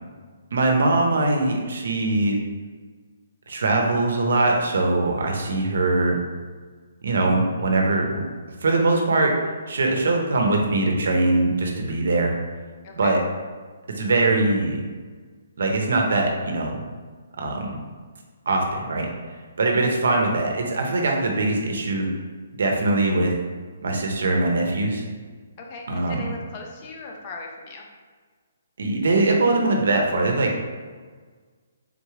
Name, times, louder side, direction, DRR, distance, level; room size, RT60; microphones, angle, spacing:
voice 1, 0.5-2.4 3.5-6.2 7.0-8.2 8.6-9.3 9.7-12.3 13.0-13.2 13.9-14.8 15.6-16.8 17.4-17.8 18.5-19.1 19.6-22.1 22.6-23.3 23.8-25.0 25.9-26.3 28.8-30.5, right 2 dB, 75° right, 1 dB, 0.8 m, -22 dB
voice 2, 11.9-12.2 12.8-13.1 19.7-19.9 25.6-27.9, left 3 dB, 30° left, 1 dB, 0.6 m, -39 dB
3.8 x 3.6 x 3.2 m, 1.5 s
hypercardioid pair, 160°, 0 cm